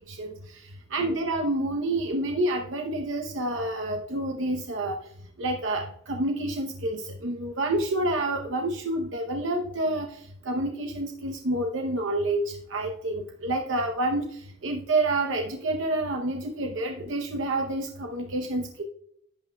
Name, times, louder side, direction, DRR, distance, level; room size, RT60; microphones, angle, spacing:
voice 1, 0.9-5.0 5.4-10.1 10.5-14.3 14.6-18.8, right 2 dB, 70° right, 3 dB, 0.8 m, -28 dB
11.0 x 8.4 x 2.3 m, 0.71 s
head